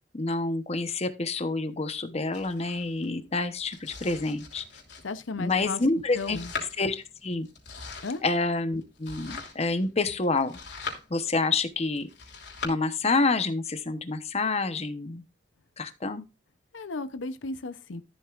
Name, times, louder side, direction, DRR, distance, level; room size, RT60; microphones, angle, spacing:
voice 1, 0.1-4.6 5.4-6.4 6.8-7.5 8.2-10.5 11.1-12.1 12.6-15.2 15.8-16.3, left 3 dB, 35° left, 0.9 m, -28 dB
Domestic sounds home sounds, 2.3-12.7, left 5 dB, 65° left, 3.1 m, -42 dB
voice 2, 5.0-5.8 6.1-6.5 8.0-8.2 16.7-18.0, left 3 dB, 90° left, 0.7 m, -35 dB
14.0 x 7.7 x 2.5 m
head